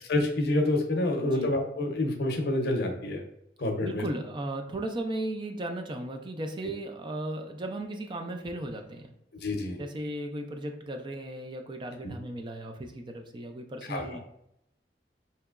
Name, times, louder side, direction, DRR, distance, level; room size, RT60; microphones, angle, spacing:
voice 1, 0.1-3.2 3.6-4.0 9.4-9.8 12.0-12.1 13.9-14.0, left 2 dB, 65° left, 4 dB, 0.6 m, -27 dB
voice 2, 1.2-1.5 3.8-9.1 9.8-14.2, right 1 dB, 25° right, 4 dB, 0.4 m, -36 dB
4.4 x 2.9 x 2.4 m, 0.77 s
head